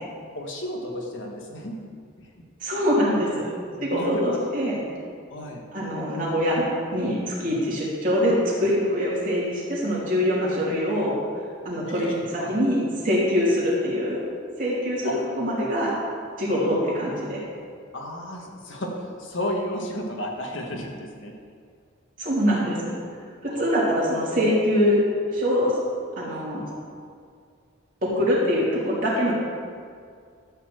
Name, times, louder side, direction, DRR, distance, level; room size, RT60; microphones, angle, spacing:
voice 1, 0.3-1.8 3.7-4.4 5.3-5.6 11.9-12.6 15.0-15.2 17.9-21.3 23.5-23.7, equal, 70° left, 0 dB, 1.6 m, -33 dB
voice 2, 2.6-3.4 3.8-4.8 5.7-6.6 6.9-11.1 11.6-12.1 12.5-14.2 14.6-15.9 16.4-17.4 22.2-23.0 23.4-25.0 25.3-25.7 26.2-26.7 28.0-29.3, equal, 40° right, -6 dB, 3.1 m, -23 dB
13.0 x 4.4 x 7.8 m, 2.2 s
head